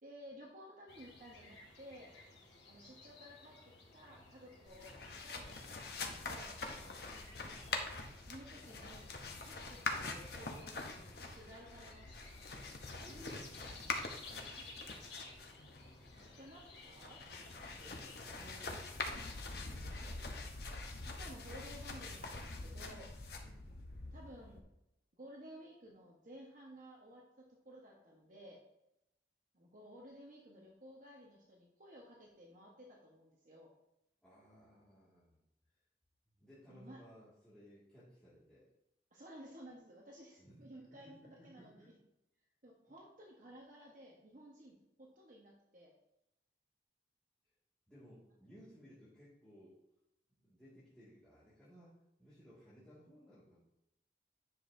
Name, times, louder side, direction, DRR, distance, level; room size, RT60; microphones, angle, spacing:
voice 1, 0.0-2.1 2.6-3.6 3.9-6.6 8.2-9.1 9.4-12.1 14.3-14.6 16.2-17.4 17.8-17.9 21.0-23.1 24.1-24.7 25.2-28.6 29.5-33.7 36.6-37.0 39.1-41.2 41.4-41.9 42.6-45.9, equal, 45° right, -2 dB, 1.2 m, -55 dB
sound 1, 0.9-19.7, left 3 dB, 75° left, 1.8 m, -57 dB
sound 2, 4.7-24.6, left 3 dB, 60° left, 0.9 m, -45 dB
voice 2, 6.7-7.8 13.0-13.9 14.3-14.8 15.4-16.8 17.6-18.9 19.6-20.6 23.5-24.5 34.2-35.4 36.4-38.7 40.4-40.7 41.0-41.9 47.9-49.8 50.4-53.6, equal, 5° left, -12 dB, 2.1 m, -60 dB
9.9 x 6.2 x 2.7 m, 0.86 s
head